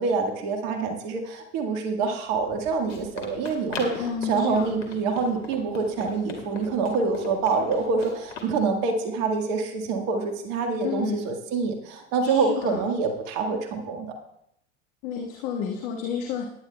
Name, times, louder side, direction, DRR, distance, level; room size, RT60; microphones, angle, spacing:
voice 1, 0.0-14.1, right 4 dB, 55° right, 4 dB, 1.6 m, -26 dB
Run, 2.3-8.5, left 3 dB, 80° left, 2.6 m, -39 dB
voice 2, 4.0-4.7 10.8-11.2 12.2-12.8 15.0-16.5, left 7 dB, 55° left, 1 dB, 1.5 m, -30 dB
19.0 x 10.0 x 2.2 m, 0.77 s
hypercardioid pair, 90°, 36 cm